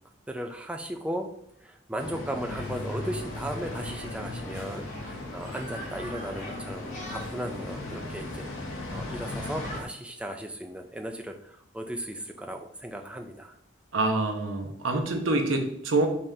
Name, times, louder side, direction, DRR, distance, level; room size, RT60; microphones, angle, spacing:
voice 1, 0.3-1.3 1.6-8.5 8.9-13.6, right 1 dB, 5° right, 4 dB, 0.3 m, -36 dB
sound 1, 2.0-9.8, left 2 dB, 85° left, 0.8 m, -38 dB
sound 2, 2.4-9.9, equal, 35° left, 1.7 m, -42 dB
voice 2, 13.9-16.1, right 2 dB, 85° right, 4 dB, 0.8 m, -26 dB
5.4 x 3.5 x 2.7 m, 0.76 s
head